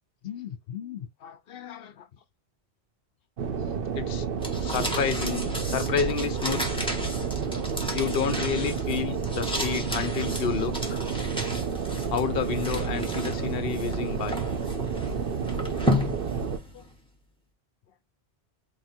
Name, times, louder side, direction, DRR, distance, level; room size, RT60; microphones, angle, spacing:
voice 1, 0.2-2.1 3.9-4.3 4.6-6.8 7.9-11.0 12.1-14.4 16.7-16.8, left 7 dB, 65° left, 0.9 m, -31 dB
sound 1, 3.4-16.6, right 6 dB, 60° right, 0.9 m, -30 dB
sound 2, 4.4-17.0, left 1 dB, 5° left, 1.1 m, -34 dB
3.7 x 2.8 x 4.3 m
omnidirectional pair, 1.1 m